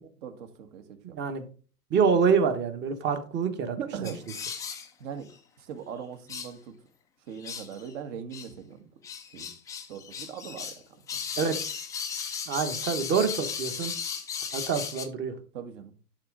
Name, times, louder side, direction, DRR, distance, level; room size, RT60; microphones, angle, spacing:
voice 1, 0.2-1.2 3.8-4.2 5.0-5.3 5.6-6.7 7.3-8.9 9.3-9.5 9.9-10.8 11.1-11.2 15.5-15.9, right 7 dB, 50° right, 6 dB, 1.7 m, -40 dB
voice 2, 1.0-1.5 1.9-3.8 4.0-4.1 11.4-11.6 12.5-13.9 14.5-15.3, right 6 dB, 25° right, 9 dB, 1.1 m, -26 dB
sound 1, 4.0-4.9 5.3-5.4 6.3-6.5 7.4-7.9 8.3-8.5 9.0-10.8 11.1-15.1, left 6 dB, 5° left, 0.4 m, -36 dB
11.0 x 4.4 x 3.8 m, 0.39 s
hypercardioid pair, 125°, 47 cm